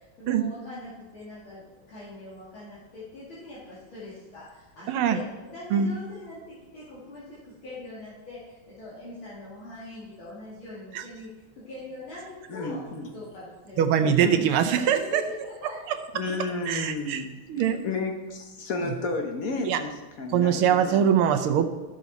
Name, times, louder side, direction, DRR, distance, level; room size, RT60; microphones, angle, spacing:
voice 1, 0.0-11.3 11.5-12.8 13.1-14.0 14.9-16.0 17.5-17.8, left 2 dB, 70° left, -10 dB, 3.0 m, -42 dB
voice 2, 4.9-5.2 5.7-5.9 10.9-11.0 13.8-15.2 15.9-16.0 16.7-17.2 17.5-17.8 19.7-19.8 20.3-21.7, right 8 dB, 85° right, 8 dB, 1.7 m, -22 dB
voice 3, 12.5-13.1 14.2-14.5 16.1-17.3 17.7-19.9 20.2-21.2, left 3 dB, 50° left, 3 dB, 1.4 m, -32 dB
13.0 x 6.4 x 4.0 m, 1.2 s
omnidirectional pair, 2.3 m